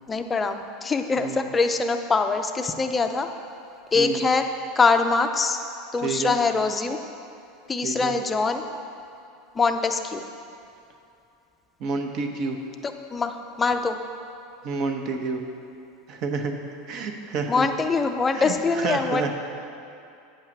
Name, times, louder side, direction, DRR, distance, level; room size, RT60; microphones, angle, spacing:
voice 1, 0.1-3.3 3.9-4.5 4.8-5.6 5.9-7.0 7.7-8.6 9.5-10.2 13.1-14.0 17.5-19.3, left 4 dB, 15° left, 6 dB, 0.5 m, -23 dB
voice 2, 1.2-1.5 3.9-4.2 6.0-6.4 7.8-8.1 11.8-12.6 14.6-15.4 16.1-16.5 16.9-17.7 18.3-19.3, right 4 dB, 45° right, 4 dB, 1.0 m, -29 dB
8.8 x 5.6 x 7.2 m, 2.6 s
supercardioid pair, 145°, 0 cm